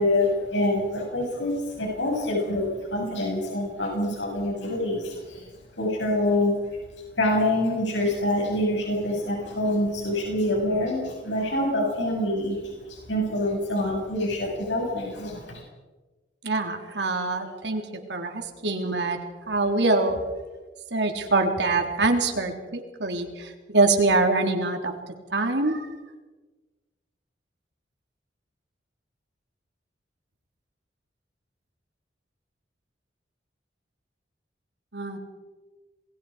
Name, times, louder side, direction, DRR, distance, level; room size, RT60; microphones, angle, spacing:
voice 1, 0.0-5.5 5.8-6.6 7.2-15.6, left 1 dB, 85° left, -1 dB, 6.7 m, -26 dB
voice 2, 16.4-17.8 18.1-19.2 19.5-20.2 20.9-24.9 25.3-25.9 34.9-35.2, right 3 dB, 70° right, 4 dB, 3.5 m, -24 dB
28.0 x 22.0 x 5.0 m, 1.2 s
head